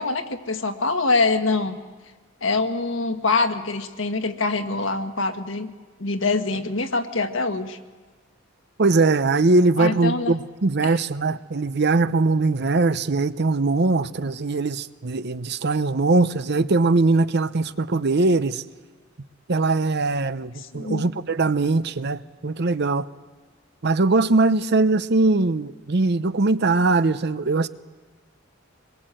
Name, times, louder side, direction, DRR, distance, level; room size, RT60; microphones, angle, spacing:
voice 1, 0.0-1.8 2.4-5.7 6.0-7.8 9.8-10.3 10.8-11.0 20.6-21.1, left 3 dB, 70° left, 1.6 m, -24 dB
voice 2, 8.8-18.6 19.5-23.1 23.8-27.7, right 3 dB, 55° right, 0.7 m, -21 dB
25.5 x 21.5 x 7.8 m
head